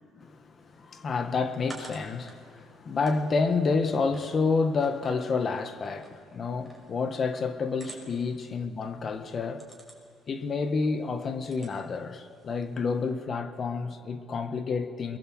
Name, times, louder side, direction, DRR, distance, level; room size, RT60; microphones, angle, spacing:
voice 1, 0.2-9.7 10.3-15.2, left 4 dB, 35° left, 1.6 m, -29 dB
sound 1, 0.6-13.1, right 1 dB, ahead, 5.8 m, -53 dB
23.0 x 22.0 x 7.9 m
cardioid pair, 130°, 0 cm